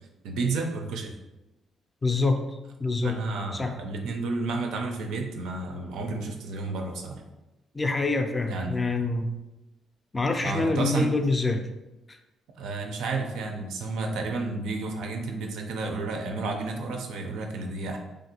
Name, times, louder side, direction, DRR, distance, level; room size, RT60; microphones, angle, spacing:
voice 1, 0.2-1.1 3.0-7.2 8.5-8.7 10.4-11.1 12.6-18.0, right 3 dB, 85° right, 3 dB, 0.4 m, -31 dB
voice 2, 2.0-2.4 2.8-3.2 3.5-3.7 7.7-9.3 10.1-11.6 12.1-12.2, left 3 dB, 25° left, 5 dB, 0.4 m, -25 dB
3.2 x 2.5 x 2.8 m, 1.0 s
cardioid pair, 90°, 0 cm